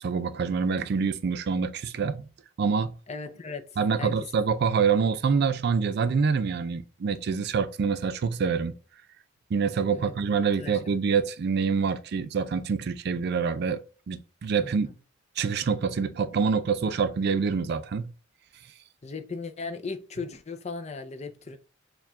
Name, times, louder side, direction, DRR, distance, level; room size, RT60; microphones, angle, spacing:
voice 1, 0.0-2.3 2.6-2.9 3.8-8.7 9.5-13.8 14.1-14.9 15.4-18.1, right 5 dB, 55° right, 0.4 m, -26 dB
voice 2, 3.1-3.6 4.0-4.1 9.9-10.1 10.6-11.0 14.6-15.0 19.0-21.6, left 4 dB, 35° left, 0.5 m, -37 dB
4.6 x 2.3 x 3.5 m
head